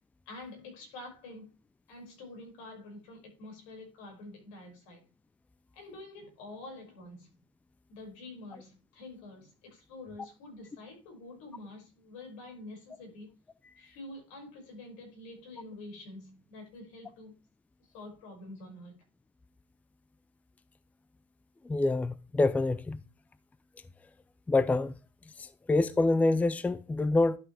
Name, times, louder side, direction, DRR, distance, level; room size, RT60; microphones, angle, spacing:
voice 1, 0.3-1.5 1.9-5.0 5.7-7.4 7.9-13.3 13.8-17.3 17.8-19.0, left 2 dB, 85° left, 5.7 m, -47 dB
voice 2, 21.7-23.0 24.5-24.9 25.7-27.4, left 2 dB, 10° left, 0.4 m, -26 dB
11.5 x 6.2 x 3.3 m
supercardioid pair, 120°, 16 cm